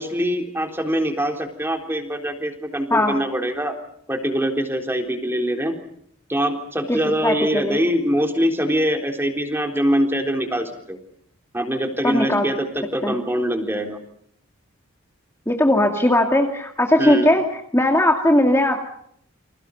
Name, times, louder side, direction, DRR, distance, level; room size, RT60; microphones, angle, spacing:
voice 1, 0.0-3.7 4.1-5.8 6.3-11.0 11.5-14.0 17.0-17.3, equal, 10° right, 4 dB, 3.8 m, -23 dB
voice 2, 6.9-7.8 12.0-12.5 13.0-13.1 15.5-17.4 17.7-18.8, left 1 dB, 10° left, 2 dB, 2.5 m, -18 dB
29.5 x 27.0 x 5.5 m, 0.69 s
head